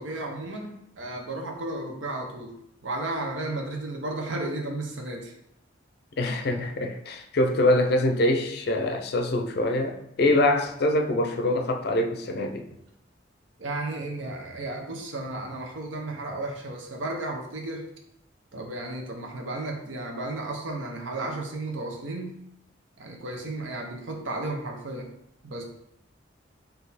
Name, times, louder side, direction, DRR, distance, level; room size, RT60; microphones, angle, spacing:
voice 1, 0.0-2.5 2.8-5.3 6.2-6.4 13.6-17.9 18.5-22.4 23.0-25.1 25.4-25.6, right 2 dB, 85° right, 1 dB, 0.8 m, -33 dB
voice 2, 6.2-12.7, left 1 dB, 55° left, 5 dB, 0.5 m, -24 dB
4.1 x 2.7 x 4.1 m, 0.78 s
head